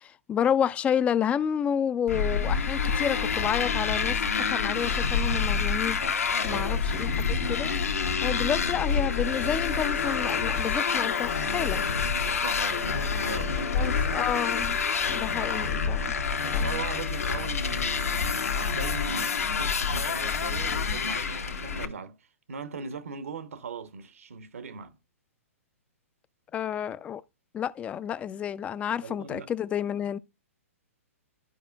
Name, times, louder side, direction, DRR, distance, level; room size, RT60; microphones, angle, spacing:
voice 1, 0.0-6.0 6.4-7.7 8.2-11.8 13.7-14.8 15.1-16.0 16.5-16.8 26.5-27.2 27.5-30.2, left 8 dB, 15° left, 0.3 m, -30 dB
Motorcycle, 2.1-21.8, left 5 dB, 80° left, 1.2 m, -27 dB
sound 1, 9.2-20.1, left 9 dB, 60° left, 1.6 m, -42 dB
voice 2, 12.1-14.8 16.4-22.2 22.5-24.9 29.0-29.5, right 5 dB, 70° right, 1.0 m, -40 dB
12.5 x 4.9 x 2.3 m
figure-of-eight pair, 120°, 8 cm